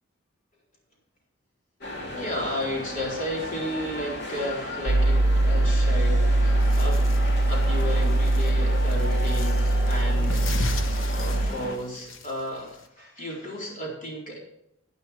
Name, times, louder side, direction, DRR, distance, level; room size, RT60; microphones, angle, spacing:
sound 1, 1.8-11.8, left 1 dB, 60° left, 2.1 m, -36 dB
voice 1, 2.1-7.0 7.5-10.5 11.1-14.4, left 1 dB, 45° left, -2 dB, 4.0 m, -33 dB
sound 2, 4.9-11.5, right 1 dB, 65° right, 0.5 m, -22 dB
sound 3, 6.6-12.9, left 3 dB, 90° left, 1.1 m, -38 dB
10.5 x 10.5 x 4.5 m, 0.80 s
head